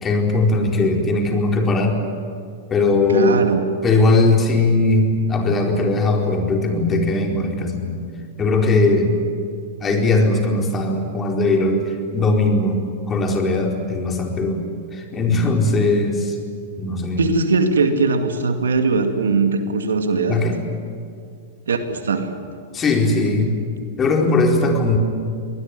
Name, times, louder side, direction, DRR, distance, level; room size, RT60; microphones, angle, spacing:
voice 1, 0.0-2.0 2.7-3.4 3.8-7.9 8.4-9.1 9.8-12.8 13.1-14.6 14.9-16.4 16.8-17.3 20.3-20.6 22.7-23.5 24.0-25.0, left 2 dB, 25° left, 2 dB, 4.5 m, -19 dB
voice 2, 3.1-3.7 17.2-20.4 21.7-22.4, right 4 dB, 85° right, 7 dB, 2.3 m, -20 dB
24.5 x 19.5 x 9.8 m, 2.3 s
hypercardioid pair, 110°, 0 cm